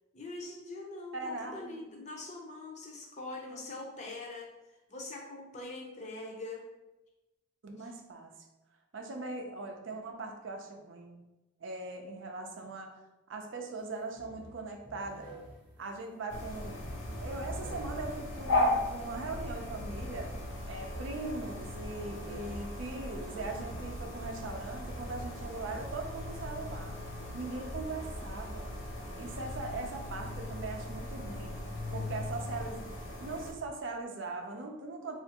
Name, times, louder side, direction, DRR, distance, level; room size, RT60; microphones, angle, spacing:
voice 1, 0.1-4.5 4.9-6.7 7.8-7.9 29.0-29.4, left 2 dB, 35° left, 0 dB, 0.5 m, -43 dB
voice 2, 1.1-1.9 3.5-3.6 7.6-8.3 8.9-11.2 11.6-13.0 13.3-15.3 15.8-16.8 17.2-20.3 20.7-27.0 27.3-28.8 29.2-31.6 31.9-32.9 33.2-35.2, right 3 dB, 70° right, 3 dB, 0.5 m, -40 dB
sound 1, 13.8-13.9 14.1-23.4, right 1 dB, 10° right, 0.6 m, -53 dB
sound 2, 16.3-33.5, left 1 dB, 80° left, 0.6 m, -37 dB
3.3 x 2.4 x 2.8 m, 1.0 s
head